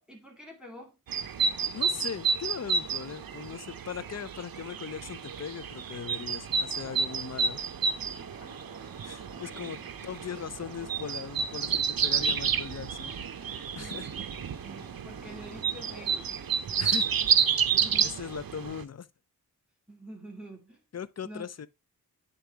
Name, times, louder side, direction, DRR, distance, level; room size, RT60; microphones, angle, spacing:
voice 1, 0.1-1.0 8.2-8.5 13.7-16.3 17.2-17.3 17.7-18.2 19.9-20.8 21.2-21.5, right 1 dB, ahead, 2.1 m, -47 dB
sound 1, 1.1-18.8, right 6 dB, 65° right, 0.7 m, -30 dB
voice 2, 1.7-7.6 9.0-13.1 13.7-14.1 14.5-14.6 16.8-17.1 18.0-19.1 20.9-21.7, left 7 dB, 45° left, 0.6 m, -39 dB
sound 2, 6.4-16.7, right 2 dB, 30° right, 1.3 m, -50 dB
9.0 x 4.1 x 3.4 m
wide cardioid pair, 85°, 37 cm